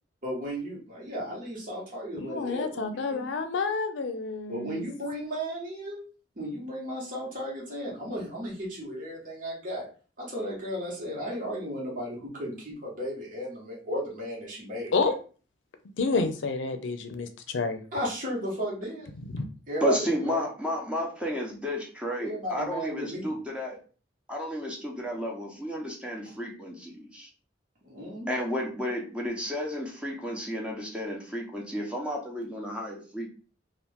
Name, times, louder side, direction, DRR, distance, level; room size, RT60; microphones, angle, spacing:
voice 1, 0.2-2.9 3.1-3.2 4.5-6.0 6.4-9.8 10.2-14.9 17.9-19.1 19.7-20.4 22.2-23.3 26.3-26.4 27.8-28.3, equal, 45° right, -4 dB, 1.3 m, -34 dB
voice 2, 2.2-4.8 14.9-15.1 16.0-17.8 19.3-19.4, left 4 dB, 85° left, 7 dB, 0.5 m, -29 dB
voice 3, 19.8-23.8 24.3-27.3 28.3-33.3, equal, 5° right, -1 dB, 0.8 m, -32 dB
2.9 x 2.4 x 3.4 m, 0.38 s
head